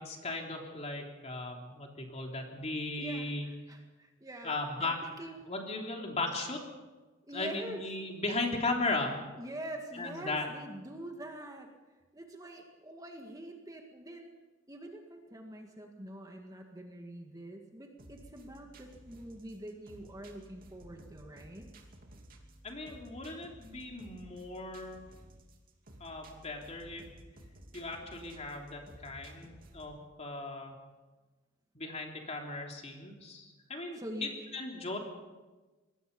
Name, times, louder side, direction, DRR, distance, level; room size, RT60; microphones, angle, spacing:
voice 1, 0.0-3.5 4.4-5.0 5.5-6.6 7.3-9.2 9.9-10.5 22.6-25.0 26.0-27.1 27.7-30.7 31.7-35.0, left 2 dB, 35° left, 1 dB, 3.3 m, -37 dB
voice 2, 3.0-5.5 7.3-7.8 9.3-11.7 12.1-14.3 14.7-21.7 34.0-34.3, right 1 dB, 20° right, 2 dB, 1.9 m, -45 dB
sound 1, 18.0-30.0, right 1 dB, 45° right, 2.9 m, -55 dB
25.5 x 19.5 x 5.5 m, 1.2 s
head